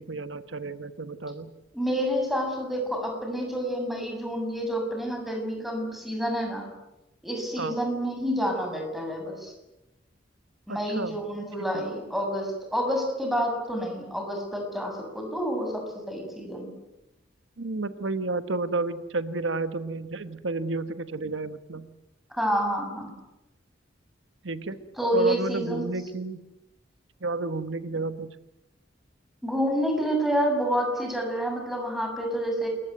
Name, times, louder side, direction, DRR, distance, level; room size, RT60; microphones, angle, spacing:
voice 1, 0.0-1.5 7.6-7.8 10.7-11.2 11.7-11.8 17.6-21.9 24.4-24.8 25.1-26.4 27.2-28.3, right 3 dB, 85° right, 11 dB, 1.3 m, -31 dB
voice 2, 1.7-6.7 7.2-9.5 10.7-16.7 22.3-23.1 25.0-25.8 29.4-32.7, equal, ahead, 3 dB, 7.1 m, -28 dB
28.0 x 22.5 x 9.3 m, 0.96 s
head